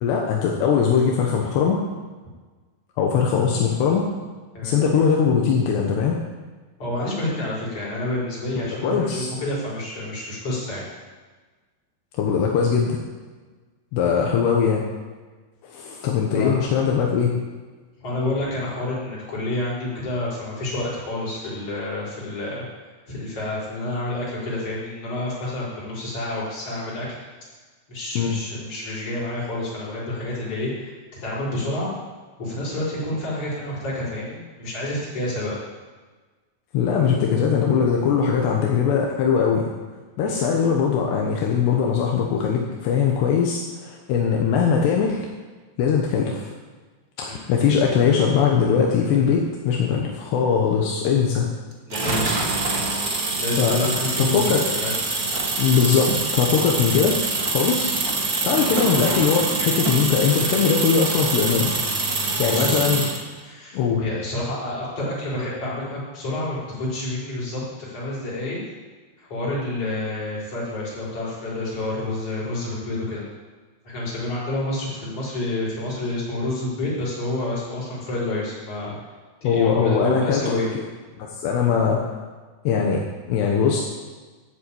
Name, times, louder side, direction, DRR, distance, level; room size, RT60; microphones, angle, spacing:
voice 1, 0.0-1.8 3.0-4.0 4.6-6.2 8.6-9.3 12.2-13.0 13.9-14.8 15.6-17.3 28.2-28.4 36.7-39.7 40.2-45.3 45.8-46.5 47.2-51.5 53.6-54.6 55.6-57.2 57.5-61.8 62.1-63.0 63.7-64.0 79.4-80.8 81.2-82.0 82.6-83.0 83.3-83.8, left 6 dB, 80° left, -1 dB, 3.3 m, -21 dB
voice 2, 6.8-10.9 16.3-16.5 18.0-22.6 23.1-27.1 27.9-30.9 31.2-31.9 32.4-35.6 40.2-40.5 47.3-47.4 51.9-52.5 53.4-54.9 62.5-62.8 63.4-68.6 69.2-73.2 73.8-78.9 79.4-80.7, left 1 dB, 35° left, -7 dB, 5.8 m, -29 dB
sound 1, 51.9-63.2, right 3 dB, 70° right, 0.8 m, -25 dB
12.5 x 7.9 x 8.7 m, 1.3 s
omnidirectional pair, 4.9 m